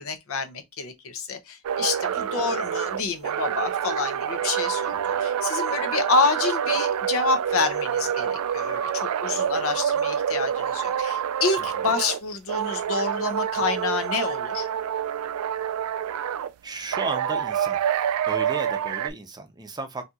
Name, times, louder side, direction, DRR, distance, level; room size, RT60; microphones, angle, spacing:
voice 1, 0.0-14.7, left 4 dB, 65° left, 0.7 m, -28 dB
sound 1, 1.6-12.2 12.5-16.5 16.9-19.1, right 9 dB, 80° right, 0.3 m, -27 dB
voice 2, 16.6-17.8 18.2-20.1, right 3 dB, 20° right, 0.6 m, -34 dB
4.0 x 2.7 x 2.3 m
head